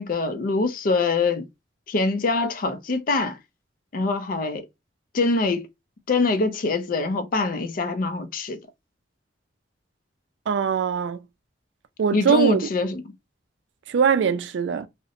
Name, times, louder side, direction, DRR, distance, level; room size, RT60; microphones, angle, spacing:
voice 1, 0.0-1.4 1.9-3.4 3.9-4.7 5.1-5.7 6.1-8.6 12.1-13.0, left 3 dB, 50° left, 0.4 m, -24 dB
voice 2, 10.5-11.2 12.0-12.6 13.9-14.9, right 6 dB, 75° right, 0.3 m, -21 dB
2.8 x 2.1 x 2.5 m
head